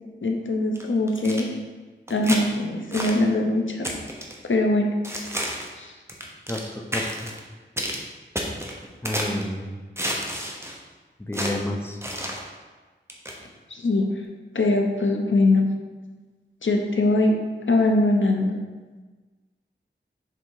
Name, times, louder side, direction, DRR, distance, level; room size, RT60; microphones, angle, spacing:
voice 1, 0.2-1.5 2.1-3.9 4.4-4.9 5.8-5.9 13.7-14.1 14.5-15.7 16.6-17.4 17.7-18.6, left 2 dB, 80° left, 2 dB, 0.7 m, -22 dB
sound 1, 0.8-1.4 2.1-2.4 2.9-3.2 3.8-4.4 5.0-5.7 6.1-6.7 6.9-7.4 7.8-8.0 8.4-9.4 10.0-10.8 11.3-11.6 12.0-12.4 13.1-13.4, equal, 15° right, 1.0 m, -30 dB
voice 2, 6.9-7.3 9.0-9.7 11.2-12.0, left 1 dB, 10° left, 2 dB, 0.7 m, -29 dB
6.8 x 3.7 x 4.7 m, 1.3 s
wide cardioid pair, 65°, 20 cm